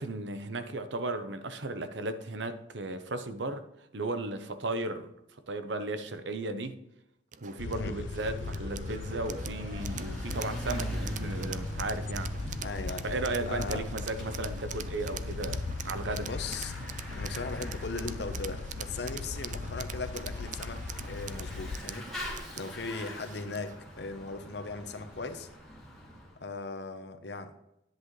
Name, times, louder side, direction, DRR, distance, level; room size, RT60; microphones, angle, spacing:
voice 1, 0.0-3.6 3.9-5.1 5.5-6.8 7.4-12.5 13.0-16.3, right 2 dB, 75° right, 0.9 m, -35 dB
sound 1, 7.3-23.9, right 8 dB, 40° right, 0.4 m, -44 dB
sound 2, 7.6-21.8, left 4 dB, 85° left, 0.5 m, -39 dB
Bicycle / Mechanisms, 8.8-26.4, equal, ahead, 2.5 m, -43 dB
voice 2, 12.6-13.0 13.5-13.8 16.1-16.7 17.2-22.1 22.6-25.5 26.4-27.5, left 3 dB, 65° left, 0.9 m, -38 dB
10.5 x 8.2 x 3.2 m
head